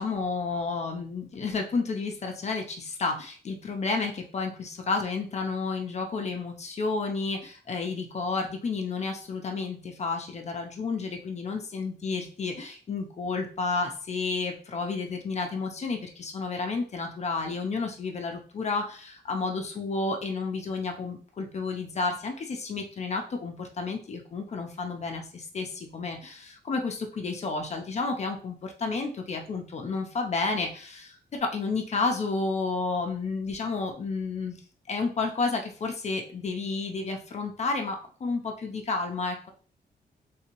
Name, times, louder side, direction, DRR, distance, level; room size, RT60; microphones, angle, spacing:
voice 1, 0.0-34.6 34.9-39.5, left 4 dB, 40° left, 3 dB, 0.5 m, -31 dB
3.3 x 2.7 x 2.9 m, 0.42 s
wide cardioid pair, 130°, 17 cm